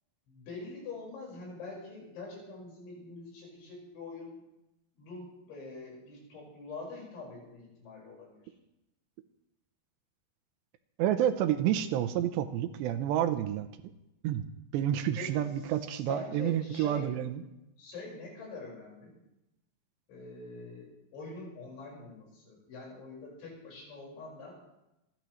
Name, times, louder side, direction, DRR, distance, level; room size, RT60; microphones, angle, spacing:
voice 1, 0.3-4.4 5.0-8.4 15.2-15.5 16.1-17.2 17.8-19.1 20.1-24.6, left 3 dB, 85° left, -3 dB, 7.4 m, -44 dB
voice 2, 11.0-13.7 14.2-14.5 14.7-17.4, right 11 dB, 85° right, 9 dB, 2.8 m, -29 dB
27.5 x 12.5 x 3.2 m, 0.92 s
omnidirectional pair, 5.2 m